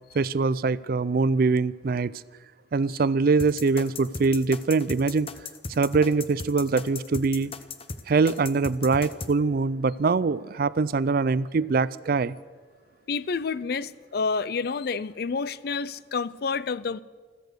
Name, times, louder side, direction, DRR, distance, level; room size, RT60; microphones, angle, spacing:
voice 1, 0.1-2.1 2.7-5.3 5.7-7.5 8.1-12.4, right 4 dB, 55° right, 0.4 m, -23 dB
sound 1, 3.4-9.3, left 4 dB, 35° left, 0.8 m, -36 dB
voice 2, 13.1-17.0, left 5 dB, 60° left, 0.5 m, -29 dB
14.5 x 14.0 x 6.7 m
head